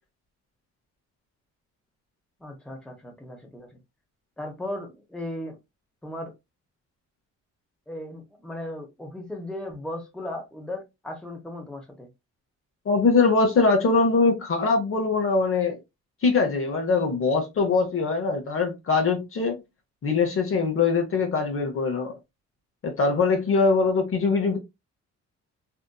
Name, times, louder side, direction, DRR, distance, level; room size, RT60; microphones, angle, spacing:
voice 1, 2.4-3.8 4.4-5.6 6.0-6.3 7.9-12.1, left 1 dB, 5° left, 0.9 m, -36 dB
voice 2, 12.9-15.8 16.2-19.6 20.0-22.1 22.8-24.6, left 4 dB, 45° left, 0.8 m, -22 dB
2.7 x 2.5 x 2.2 m
cardioid pair, 90°, 30 cm